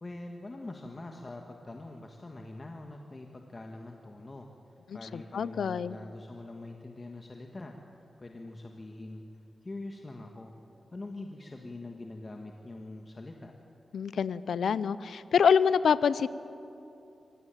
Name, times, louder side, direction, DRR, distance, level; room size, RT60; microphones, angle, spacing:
voice 1, 0.0-4.5 4.9-7.7 8.2-9.2 9.6-10.5 10.9-13.5, left 2 dB, 35° left, 3 dB, 1.7 m, -43 dB
voice 2, 5.1-6.0 13.9-16.3, left 7 dB, 85° left, 16 dB, 0.6 m, -26 dB
24.0 x 17.5 x 9.1 m, 2.8 s
cardioid pair, 75°, 0 cm